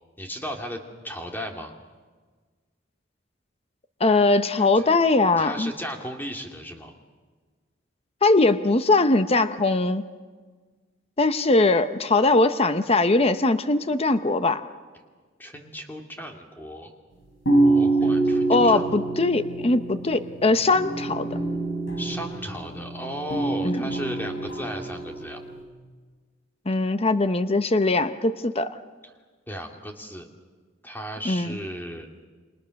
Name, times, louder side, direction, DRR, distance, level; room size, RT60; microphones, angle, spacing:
voice 1, 0.2-1.7 4.6-4.8 5.4-6.9 15.4-16.9 17.5-18.9 22.0-25.4 29.5-30.3 30.8-32.1, equal, 10° left, 2 dB, 2.6 m, -35 dB
voice 2, 4.0-5.7 8.2-10.0 11.2-14.6 18.5-21.3 23.6-23.8 26.7-28.8 31.2-31.6, left 2 dB, 30° left, 11 dB, 0.9 m, -21 dB
sound 1, 17.5-25.6, right 2 dB, 80° left, 7.7 m, -26 dB
28.5 x 26.0 x 6.5 m, 1.4 s
head